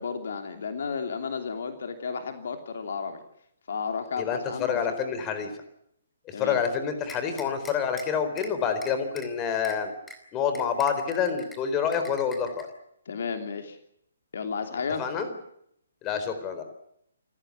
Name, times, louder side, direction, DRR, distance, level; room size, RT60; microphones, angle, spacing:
voice 1, 0.0-3.2 3.7-4.8 6.3-6.6 13.0-13.8 14.3-15.0, left 5 dB, 55° left, 7 dB, 3.0 m, -32 dB
voice 2, 4.2-5.5 6.3-9.9 10.3-12.7 15.0-15.3 16.0-16.6, left 7 dB, 20° left, 9 dB, 4.3 m, -28 dB
sound 1, 7.1-8.0 8.4-8.5 8.8-9.3 9.6-9.7 10.1-10.2 10.5-11.6 11.9-12.6, left 2 dB, 5° left, 4.4 m, -43 dB
29.0 x 15.0 x 9.9 m, 0.74 s
figure-of-eight pair, 130°, 0 cm